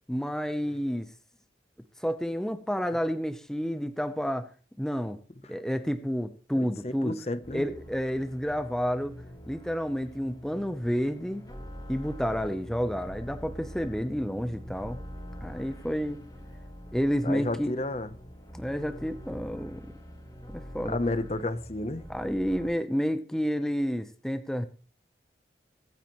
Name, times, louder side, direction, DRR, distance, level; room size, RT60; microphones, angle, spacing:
voice 1, 0.1-1.1 2.0-4.5 4.8-5.2 5.5-7.1 7.5-9.2 9.5-11.4 11.9-15.0 15.4-16.2 16.9-17.7 18.5-19.9 20.5-21.0 22.1-24.7, equal, 5° left, 0.7 m, -30 dB
voice 2, 6.6-7.6 17.2-18.1 20.8-22.0, left 2 dB, 35° left, 0.8 m, -32 dB
sound 1, 7.4-22.7, equal, 20° left, 4.2 m, -44 dB
22.5 x 9.8 x 3.1 m
head